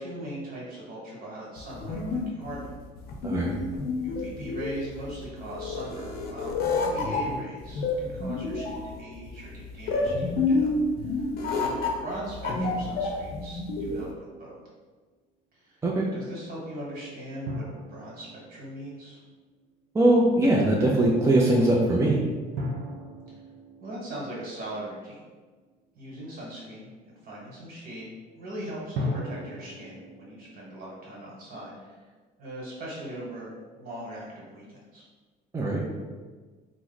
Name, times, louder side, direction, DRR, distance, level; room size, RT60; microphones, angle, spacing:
voice 1, 0.0-2.7 4.0-10.7 11.1-14.1 14.4-14.5 15.5-15.8 16.1-17.6 17.9-19.2 23.8-25.3 25.9-32.0 32.4-35.0, right 1 dB, 60° right, -5 dB, 1.3 m, -40 dB
sound 1, 1.6-14.1, left 3 dB, 65° left, 0.6 m, -29 dB
sound 2, 17.5-19.7 22.6-25.5 29.0-30.8, left 1 dB, 85° right, 0.6 m, -37 dB
voice 2, 19.9-22.2 35.5-35.8, right 1 dB, 15° right, -3 dB, 0.4 m, -21 dB
3.0 x 2.0 x 3.9 m, 1.4 s
cardioid pair, 110°, 17 cm